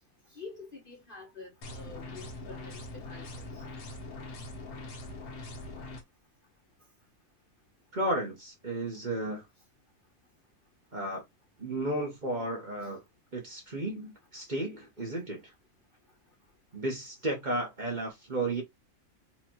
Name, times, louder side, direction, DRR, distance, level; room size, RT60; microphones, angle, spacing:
voice 1, 0.3-2.8 3.1-3.6 12.8-12.9, left 4 dB, 40° left, 1.0 m, -47 dB
sound 1, 1.6-6.0, left 2 dB, 80° left, 1.5 m, -42 dB
voice 2, 7.9-9.4 10.9-11.2 11.6-13.0 13.3-15.4 16.7-18.6, right 1 dB, 35° right, 1.1 m, -33 dB
4.4 x 2.5 x 2.9 m
omnidirectional pair, 1.6 m